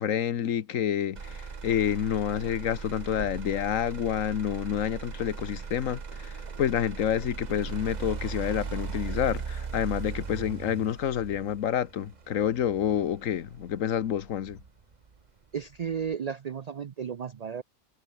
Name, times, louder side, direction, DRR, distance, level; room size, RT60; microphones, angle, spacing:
voice 1, 0.0-14.6, left 9 dB, 85° left, 1.3 m, -28 dB
Motor vehicle (road), 1.2-15.2 15.6-16.1, right 5 dB, 35° right, 1.1 m, -38 dB
voice 2, 15.5-17.6, right 7 dB, 55° right, 0.4 m, -34 dB
omnidirectional pair, 1.3 m